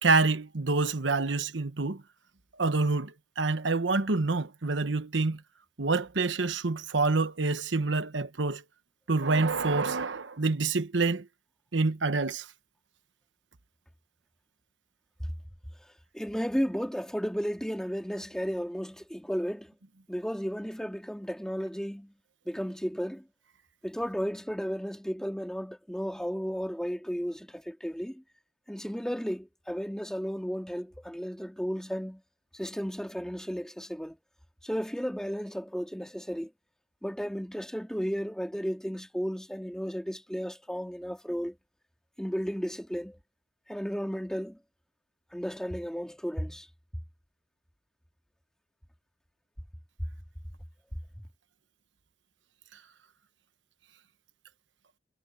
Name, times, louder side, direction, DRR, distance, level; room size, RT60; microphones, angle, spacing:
voice 1, 0.0-2.0 2.6-5.4 5.8-8.6 9.1-11.3 11.7-12.5, right 3 dB, 85° right, 1.1 m, -27 dB
voice 2, 16.1-19.7 20.1-22.1 22.5-23.2 23.8-28.2 28.7-32.2 32.5-34.2 34.6-36.5 37.0-41.6 42.2-43.2 43.7-44.6 45.3-46.7, equal, 5° left, 2.1 m, -34 dB
head